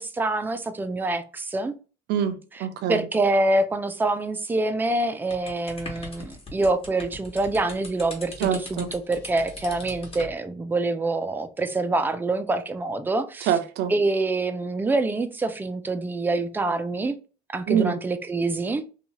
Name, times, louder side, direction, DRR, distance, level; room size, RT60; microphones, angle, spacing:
voice 1, 0.0-1.7 2.9-13.5 13.9-17.1 17.5-18.9, right 2 dB, 10° right, 0.4 m, -26 dB
voice 2, 2.1-3.1 8.4-8.9 13.4-13.9 17.7-17.9, right 9 dB, 75° right, 0.5 m, -25 dB
sound 1, 5.3-10.3, left 2 dB, 35° left, 1.1 m, -40 dB
2.7 x 2.3 x 2.9 m
cardioid pair, 110°, 17 cm